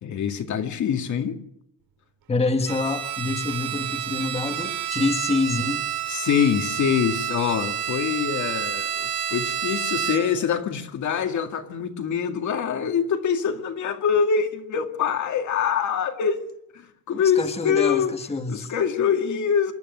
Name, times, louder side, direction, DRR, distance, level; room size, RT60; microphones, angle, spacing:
voice 1, 0.0-1.4 6.1-16.5 16.7-18.1 18.5-19.7, left 7 dB, 50° left, 2.2 m, -24 dB
voice 2, 2.3-5.8 17.1-18.7, left 3 dB, 15° left, 1.6 m, -26 dB
Bowed string instrument, 2.7-10.5, right 10 dB, 75° right, 2.8 m, -29 dB
28.0 x 12.0 x 7.9 m
cardioid pair, 160°, 36 cm